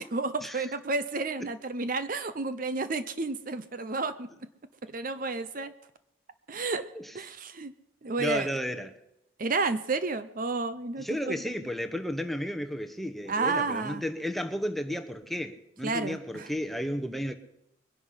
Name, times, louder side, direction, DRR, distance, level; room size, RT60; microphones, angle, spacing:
voice 1, 0.0-4.3 4.8-5.7 6.5-6.9 7.1-7.7 8.0-8.5 9.4-11.4 13.3-14.0 15.8-16.5, right 3 dB, 45° right, 0.7 m, -31 dB
voice 2, 8.2-9.0 11.0-17.3, equal, ahead, 1.0 m, -33 dB
22.0 x 11.0 x 5.7 m
head